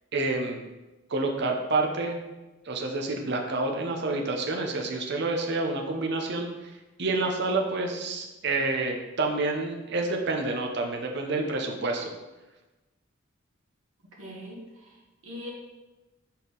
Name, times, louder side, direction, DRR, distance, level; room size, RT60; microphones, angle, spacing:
voice 1, 0.1-0.6 1.1-2.2 2.7-6.5 7.0-12.1, right 2 dB, 55° right, 2 dB, 0.8 m, -28 dB
voice 2, 14.2-15.5, left 1 dB, 80° right, -4 dB, 1.3 m, -42 dB
5.5 x 4.5 x 3.8 m, 1.1 s
head